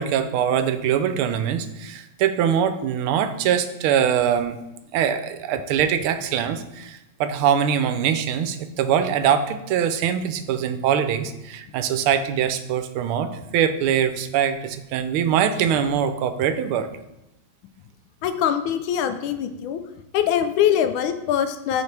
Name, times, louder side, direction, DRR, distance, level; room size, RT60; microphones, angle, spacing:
voice 1, 0.0-4.6 4.9-16.9, right 8 dB, 90° right, 10 dB, 1.5 m, -23 dB
voice 2, 18.2-19.8 20.1-21.8, left 9 dB, 75° left, 8 dB, 1.3 m, -23 dB
9.6 x 4.5 x 3.3 m, 0.90 s
omnidirectional pair, 2.3 m